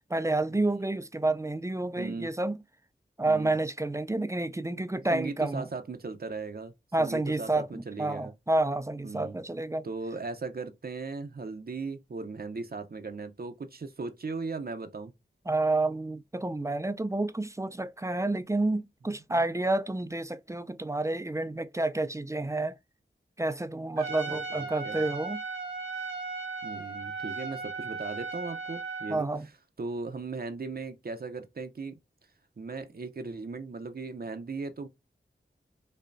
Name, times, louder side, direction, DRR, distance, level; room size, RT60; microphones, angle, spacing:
voice 1, 0.1-2.6 3.2-5.7 6.9-9.8 15.5-22.7 23.4-25.4 29.1-29.5, right 2 dB, 15° right, 0.3 m, -29 dB
voice 2, 2.0-2.3 3.3-3.5 5.1-8.3 9.0-9.4 9.8-15.1 19.3-19.4 24.3-25.0 26.6-29.3 29.8-32.0 32.6-34.9, right 4 dB, 55° right, 0.6 m, -38 dB
Trumpet, 24.0-29.2, right 4 dB, 80° right, 1.0 m, -36 dB
5.3 x 2.2 x 2.5 m
wide cardioid pair, 55°, 19 cm